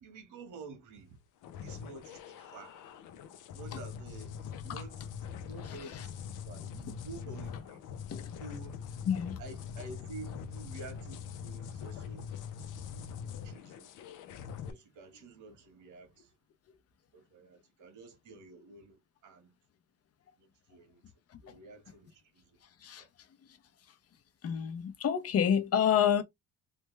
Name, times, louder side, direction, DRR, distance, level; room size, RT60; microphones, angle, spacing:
voice 1, 0.0-1.2 1.6-2.8 3.5-5.1 5.4-6.1 6.4-7.8 8.4-8.8 9.4-12.3 12.9-13.2 13.4-13.9 14.7-16.3 17.1-19.5 20.4-21.0 21.4-22.6 23.0-23.1, right 3 dB, 85° right, 1.4 m, -50 dB
sound 1, 1.4-14.7, left 7 dB, 85° left, 0.6 m, -43 dB
voice 2, 9.1-9.4 13.3-13.5 21.5-21.6 22.8-23.1 24.4-26.2, left 8 dB, 55° left, 0.7 m, -29 dB
3.3 x 2.2 x 3.2 m
cardioid pair, 90°, 30 cm